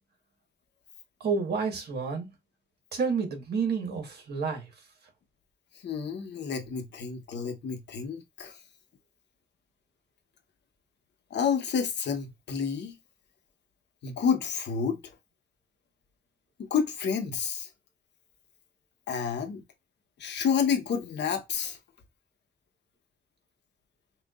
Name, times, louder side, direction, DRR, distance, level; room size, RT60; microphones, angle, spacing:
voice 1, 1.2-2.3 2.9-4.7, right 5 dB, 65° right, 1.6 m, -29 dB
voice 2, 5.8-8.6 11.3-13.0 14.0-15.1 16.6-17.7 19.1-19.6 20.2-21.8, left 6 dB, 70° left, 1.1 m, -29 dB
5.7 x 2.5 x 2.4 m
cardioid pair, 110°, 18 cm